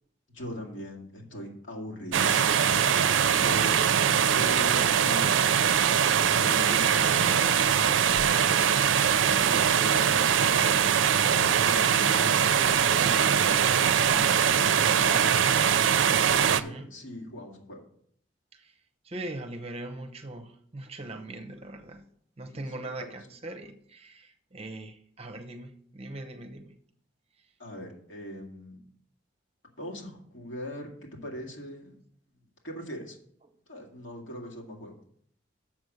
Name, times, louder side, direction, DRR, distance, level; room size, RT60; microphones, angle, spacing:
voice 1, 0.3-2.8 3.3-3.8 4.3-5.5 6.1-8.8 9.4-10.8 11.3-15.3 16.3-17.8 22.5-23.1 27.6-28.8 29.8-31.9 32.6-33.2 33.7-35.0, equal, 70° left, 0 dB, 2.2 m, -40 dB
sound 1, 2.1-16.6, right 8 dB, 75° right, 0.5 m, -22 dB
voice 2, 19.0-22.0 22.4-26.7, right 2 dB, 30° right, 5 dB, 0.8 m, -40 dB
7.4 x 6.1 x 6.5 m, 0.65 s
head